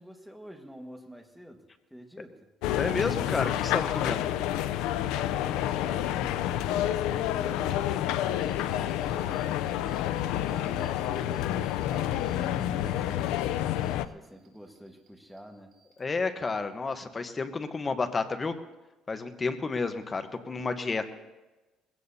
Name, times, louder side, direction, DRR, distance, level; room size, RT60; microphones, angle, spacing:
voice 1, 0.0-2.5 5.1-13.3 14.1-15.7, equal, ahead, 3 dB, 1.6 m, -48 dB
sound 1, 2.6-14.1, left 12 dB, 90° left, 0.5 m, -29 dB
voice 2, 2.8-4.2 16.0-18.6 19.1-21.1, left 4 dB, 25° left, 9 dB, 1.1 m, -31 dB
sound 2, 8.4-9.5 9.9-11.0 11.3-13.9 14.2-15.4 15.7-16.3, right 4 dB, 65° right, 2.9 m, -61 dB
21.0 x 16.5 x 2.8 m, 1.1 s
cardioid pair, 115°, 0 cm